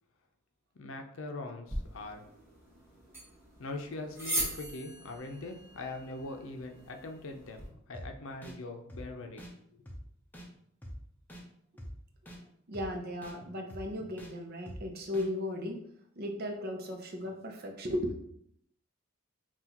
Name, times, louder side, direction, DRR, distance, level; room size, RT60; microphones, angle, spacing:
voice 1, 0.7-2.3 3.6-9.4 9.7-9.9, left 2 dB, 75° left, 5 dB, 0.6 m, -42 dB
sound 1, 1.7-7.7, right 1 dB, 10° right, 1.3 m, -40 dB
sound 2, 7.9-8.1 8.4-8.5 8.9-9.0 9.4-9.5 9.9-10.0 10.3-10.5 10.8-10.9 11.3-11.4 11.8-11.9 12.3-12.4 12.7-12.9 13.2-13.3 13.7-13.8 14.2-14.3 14.7-14.8 15.1-15.3, equal, 10° left, 0.6 m, -45 dB
voice 2, 12.7-15.8 16.2-18.1, left 1 dB, 50° right, 3 dB, 0.7 m, -36 dB
5.7 x 2.4 x 2.9 m, 0.72 s
head